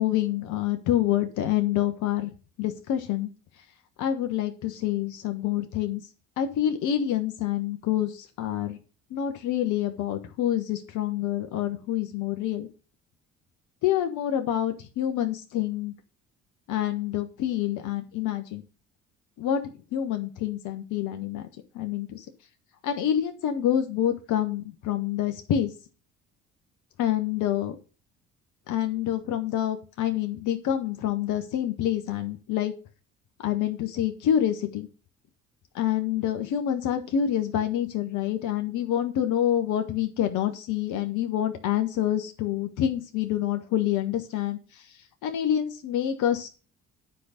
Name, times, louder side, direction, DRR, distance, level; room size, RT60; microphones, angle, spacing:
voice 1, 0.0-2.3 2.6-3.3 4.0-6.0 6.4-8.8 9.1-12.7 13.8-15.9 16.7-18.6 19.4-21.5 21.7-22.3 22.8-25.7 27.0-27.7 28.7-32.7 33.4-34.9 35.7-45.0 45.2-46.5, left 11 dB, 60° left, 8 dB, 1.3 m, -27 dB
10.0 x 5.1 x 6.6 m, 0.34 s
hypercardioid pair, 55°, 35 cm